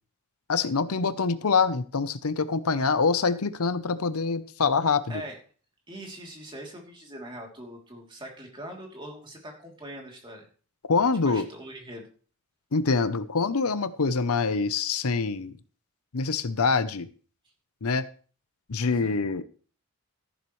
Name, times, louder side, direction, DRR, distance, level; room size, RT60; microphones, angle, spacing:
voice 1, 0.5-5.2 10.9-11.5 12.7-15.5 16.1-17.1 17.8-18.1 18.7-19.4, left 4 dB, 80° left, 13 dB, 0.8 m, -25 dB
voice 2, 5.9-10.4 11.2-12.1 18.8-19.2, right 1 dB, 20° right, 0 dB, 3.1 m, -42 dB
14.0 x 11.5 x 3.2 m, 0.40 s
head